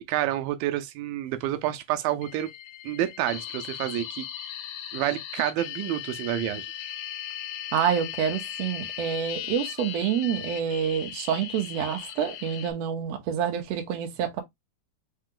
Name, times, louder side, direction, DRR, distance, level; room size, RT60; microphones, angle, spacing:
voice 1, 0.1-2.5 2.8-4.3 4.9-6.7, right 13 dB, 85° right, 2.4 m, -28 dB
sound 1, 2.2-12.7, left 11 dB, 75° left, 1.8 m, -38 dB
voice 2, 7.7-14.4, right 8 dB, 65° right, 1.7 m, -27 dB
5.7 x 2.4 x 3.7 m
omnidirectional pair, 4.1 m